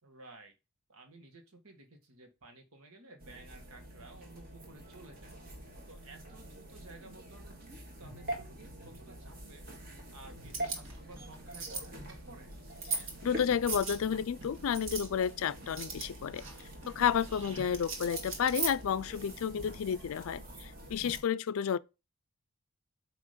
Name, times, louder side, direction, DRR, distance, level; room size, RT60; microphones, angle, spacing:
voice 1, 0.0-0.5 0.9-5.4 5.9-7.6 8.0-9.6 10.1-12.5 17.6-17.8, right 2 dB, 80° right, 1.5 m, -54 dB
sound 1, 3.2-21.2, right 1 dB, 40° right, 1.7 m, -46 dB
sound 2, 10.4-19.3, right 4 dB, 60° right, 1.8 m, -41 dB
voice 2, 13.2-16.4 16.9-21.8, left 8 dB, 70° left, 0.3 m, -31 dB
8.2 x 3.0 x 5.0 m
head